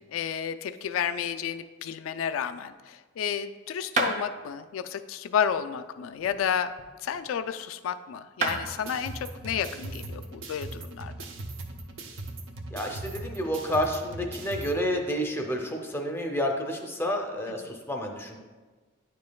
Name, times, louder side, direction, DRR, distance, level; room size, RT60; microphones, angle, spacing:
voice 1, 0.0-6.7 7.0-11.1 17.6-17.8, left 8 dB, 80° left, 11 dB, 0.3 m, -31 dB
sound 1, 4.0-4.2 6.1-7.4 8.0-8.1 8.4-8.6, right 3 dB, 40° right, 0.7 m, -31 dB
sound 2, 8.5-14.7, right 2 dB, 75° right, 0.7 m, -39 dB
voice 2, 12.7-18.4, equal, 10° left, 2 dB, 0.5 m, -30 dB
9.8 x 5.2 x 2.3 m, 1.3 s
head